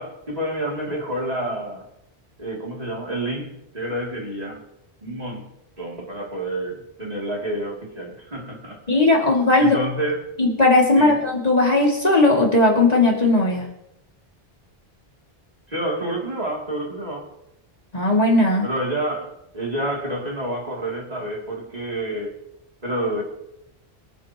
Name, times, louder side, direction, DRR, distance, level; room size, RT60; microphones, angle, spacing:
voice 1, 0.0-1.9 2.4-4.6 5.0-8.8 9.6-10.3 11.0-11.2 15.7-17.3 18.6-22.4 22.8-23.2, right 1 dB, 40° right, -3 dB, 2.9 m, -29 dB
voice 2, 8.9-9.8 10.4-13.7 17.9-18.7, left 2 dB, 40° left, -2 dB, 2.6 m, -17 dB
24.0 x 9.5 x 3.0 m, 0.84 s
omnidirectional pair, 1.1 m